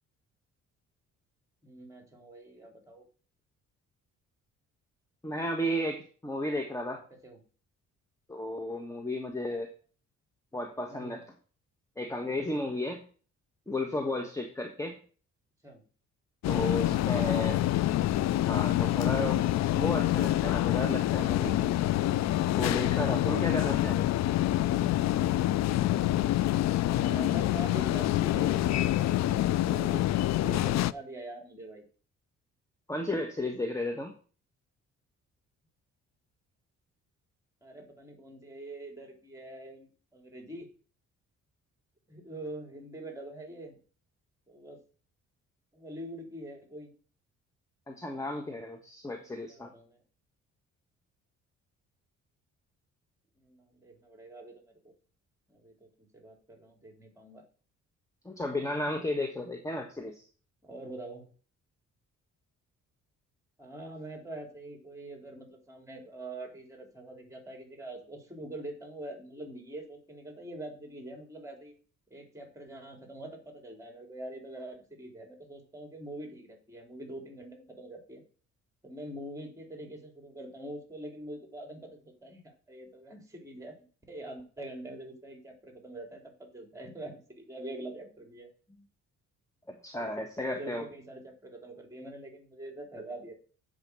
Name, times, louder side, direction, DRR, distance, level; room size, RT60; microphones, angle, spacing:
voice 1, 1.6-3.1 6.9-7.4 10.8-11.2 15.6-15.8 17.4-17.9 26.9-31.8 37.6-40.7 42.1-43.8 44.5-44.8 45.7-46.9 49.2-50.0 53.4-54.9 55.5-57.4 60.6-61.3 63.6-71.7 72.1-78.2 78.8-88.8 89.9-90.1 90.4-93.3, right 1 dB, 10° right, 2 dB, 3.6 m, -44 dB
voice 2, 5.2-7.0 8.3-9.7 10.5-11.2 12.0-13.0 13.7-14.9 16.5-17.6 18.5-19.4 19.7-21.6 22.6-24.1 32.9-34.1 47.9-49.7 58.2-60.2 89.8-90.9, left 1 dB, 10° left, 3 dB, 1.3 m, -33 dB
sound 1, 16.4-30.9, left 14 dB, 60° left, 0.4 m, -26 dB
8.1 x 5.3 x 6.9 m, 0.41 s
cardioid pair, 90°, 30 cm